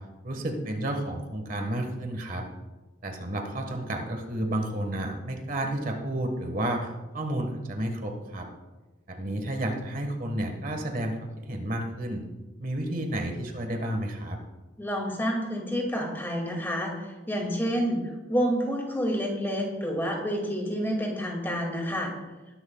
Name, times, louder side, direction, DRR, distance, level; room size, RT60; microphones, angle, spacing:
voice 1, 0.2-2.4 3.0-8.5 9.1-12.2 12.6-14.4, right 1 dB, 45° right, 3 dB, 1.5 m, -31 dB
voice 2, 14.8-18.0 18.3-22.1, equal, 10° left, 0 dB, 2.3 m, -29 dB
20.5 x 11.0 x 2.4 m, 1.1 s
head